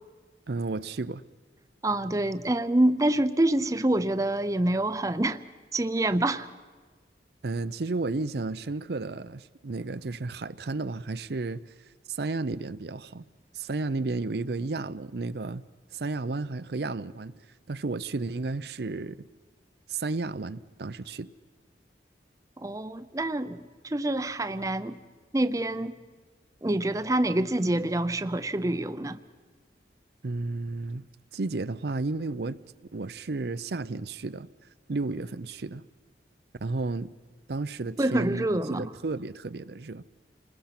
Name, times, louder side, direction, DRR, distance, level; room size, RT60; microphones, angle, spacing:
voice 1, 0.5-1.2 7.4-11.6 12.1-13.3 13.5-15.6 15.9-17.4 17.7-19.3 19.9-21.3 30.2-31.0 31.3-32.6 32.9-34.5 34.9-35.9 36.6-37.1 37.5-40.0, right 3 dB, 65° right, 0.6 m, -32 dB
voice 2, 1.8-5.4 5.7-6.5 22.6-25.0 25.3-25.9 26.6-29.2 38.0-38.9, right 1 dB, 20° right, 0.6 m, -26 dB
29.0 x 20.5 x 5.9 m
head